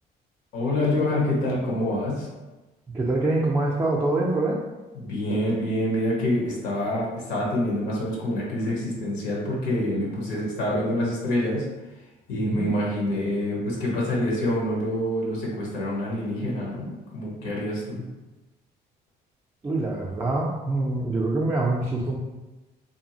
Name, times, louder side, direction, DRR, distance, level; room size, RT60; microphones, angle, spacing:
voice 1, 0.5-2.3 4.9-11.7 12.3-18.0, left 1 dB, 85° left, -4 dB, 0.9 m, -26 dB
voice 2, 2.9-4.6 12.4-12.6 19.6-22.2, right 2 dB, 15° right, -3 dB, 0.4 m, -25 dB
2.6 x 2.4 x 2.7 m, 1.1 s
cardioid pair, 110°, 17 cm